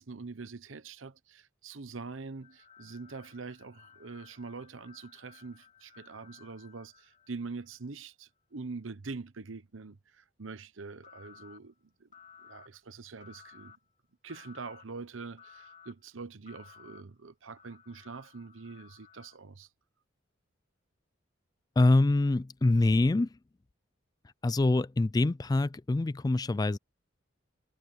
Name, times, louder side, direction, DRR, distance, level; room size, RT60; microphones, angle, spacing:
voice 1, 0.0-11.7 12.0-12.1 12.4-13.8 14.2-19.7, right 4 dB, 90° right, 1.0 m, -44 dB
sound 1, 2.4-7.8 11.0-11.6 12.1-12.7 13.2-13.8 14.3-14.8 15.4-15.9 16.5-17.0 17.6-19.4, left 7 dB, 40° left, 2.9 m, -56 dB
voice 2, 21.8-23.3 24.4-26.8, left 2 dB, 20° left, 0.3 m, -25 dB
head